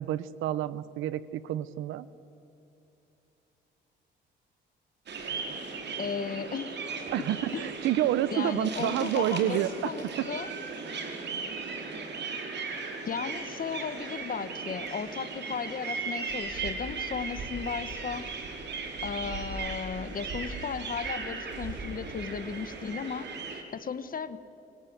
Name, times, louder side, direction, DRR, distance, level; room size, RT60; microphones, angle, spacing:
voice 1, 0.0-2.1 7.1-9.9, right 12 dB, 90° right, 17 dB, 0.8 m, -29 dB
sound 1, 5.1-23.6, right 4 dB, 60° right, 4.7 m, -37 dB
voice 2, 6.0-6.7 7.5-7.6 8.3-10.5 13.0-18.3 19.0-24.4, left 6 dB, 45° left, 13 dB, 1.5 m, -35 dB
28.0 x 24.5 x 8.2 m, 2.9 s
cardioid pair, 90°, 20 cm